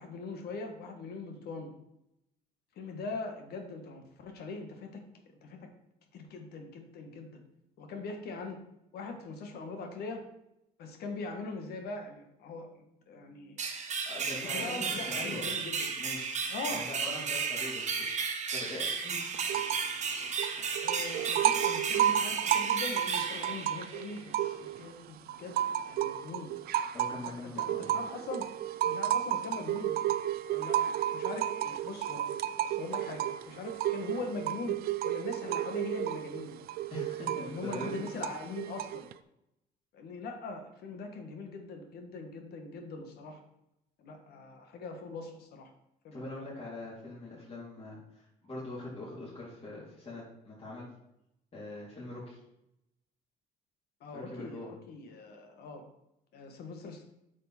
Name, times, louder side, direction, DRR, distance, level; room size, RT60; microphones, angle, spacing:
voice 1, 0.0-1.7 2.8-5.0 5.4-5.7 6.1-7.4 7.8-8.6 8.9-10.3 10.8-12.7 13.1-13.6 14.5-15.9 16.5-16.9 20.8-25.6 25.9-26.5 27.4-28.5 28.8-30.0 30.5-32.3 32.6-34.8 35.0-36.6 37.5-39.0 39.9-43.4 44.0-45.7 46.0-46.2 54.0-55.8 56.3-57.0, left 3 dB, 70° left, 4 dB, 1.6 m, -41 dB
sound 1, 13.6-24.3, right 5 dB, 45° right, 1.5 m, -34 dB
voice 2, 14.1-15.5 16.0-16.4 16.6-18.1 18.5-19.2 26.9-27.9 36.9-38.0 46.1-50.9 51.5-52.4 54.1-54.7, left 2 dB, 35° left, -8 dB, 3.8 m, -42 dB
sound 2, 19.3-20.0 20.2-24.9 25.3-39.1, right 11 dB, 65° right, 0.5 m, -32 dB
8.6 x 6.5 x 4.4 m, 0.84 s
cardioid pair, 110°, 17 cm